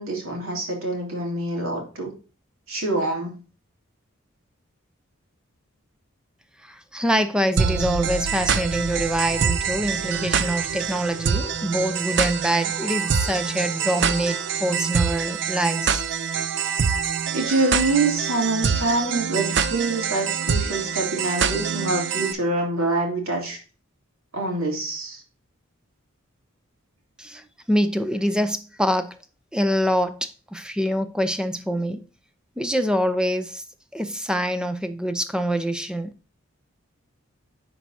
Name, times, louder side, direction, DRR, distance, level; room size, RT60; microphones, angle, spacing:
voice 1, 0.0-2.1 2.7-3.4 17.3-23.6 24.3-25.2, right 2 dB, 80° right, 2.9 m, -25 dB
voice 2, 6.9-16.0 27.2-27.4 27.7-29.1 29.5-32.0 32.6-33.6 33.9-36.1, equal, 5° right, 0.5 m, -25 dB
sound 1, 7.6-22.3, right 6 dB, 55° right, 0.5 m, -25 dB
10.5 x 4.6 x 2.7 m
head